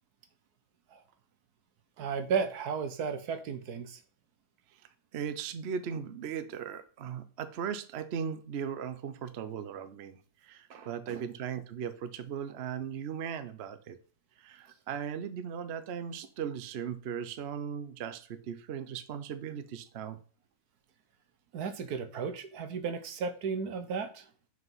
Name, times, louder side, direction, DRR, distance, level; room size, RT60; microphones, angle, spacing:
voice 1, 2.0-4.0 10.7-11.2 21.5-24.3, right 6 dB, 70° right, 10 dB, 1.4 m, -34 dB
voice 2, 5.1-14.0 14.4-20.2, right 7 dB, 55° right, 11 dB, 0.8 m, -38 dB
6.3 x 5.1 x 5.4 m, 0.38 s
omnidirectional pair, 1.7 m